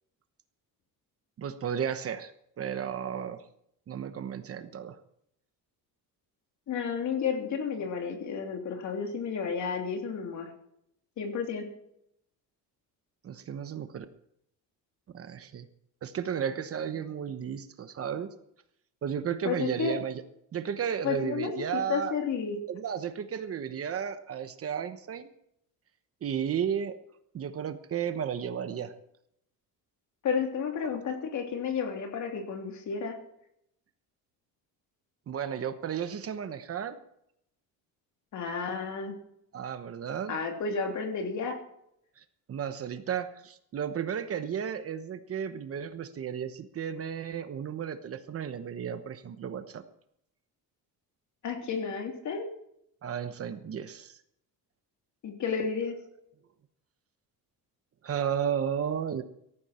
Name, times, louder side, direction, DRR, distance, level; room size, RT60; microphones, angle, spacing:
voice 1, 1.4-2.3 2.6-3.4 3.9-5.0 13.2-14.1 15.1-15.7 16.0-18.3 19.0-20.2 20.5-22.2 22.7-25.3 26.2-27.0 27.3-28.9 35.3-37.0 39.5-40.3 42.2-49.8 53.0-54.2 58.0-59.2, right 8 dB, 40° right, 10 dB, 1.1 m, -33 dB
voice 2, 6.7-10.5 11.2-11.7 19.4-20.0 21.0-22.6 30.2-33.2 38.3-39.2 40.3-41.6 51.4-52.5 55.2-56.0, left 6 dB, 50° left, 4 dB, 3.1 m, -32 dB
17.5 x 14.5 x 4.4 m, 0.74 s
cardioid pair, 170°, 37 cm